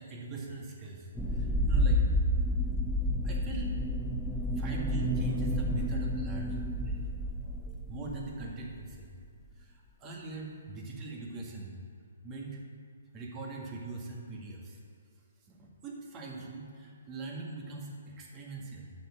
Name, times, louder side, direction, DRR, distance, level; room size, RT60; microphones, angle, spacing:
voice 1, 0.0-2.0 3.2-3.7 4.5-9.1 9.5-11.8 12.2-12.6 13.1-14.8 15.5-18.9, right 3 dB, 25° right, -2 dB, 1.9 m, -42 dB
sound 1, 1.2-8.5 8.8-8.9 9.5-9.6, equal, 5° left, 0.7 m, -30 dB
6.7 x 6.6 x 7.3 m, 2.2 s
hypercardioid pair, 135°, 0 cm